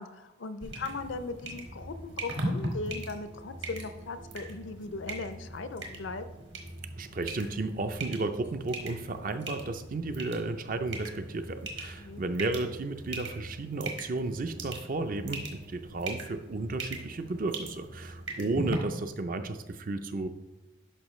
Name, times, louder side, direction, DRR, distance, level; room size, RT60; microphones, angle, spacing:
voice 1, 0.0-6.2 12.0-12.2, left 3 dB, 65° left, 11 dB, 0.5 m, -38 dB
sound 1, 0.6-18.8, right 1 dB, 60° right, 1.4 m, -40 dB
voice 2, 7.0-20.3, right 2 dB, 40° right, 9 dB, 0.5 m, -33 dB
11.5 x 5.4 x 3.1 m, 1.1 s
head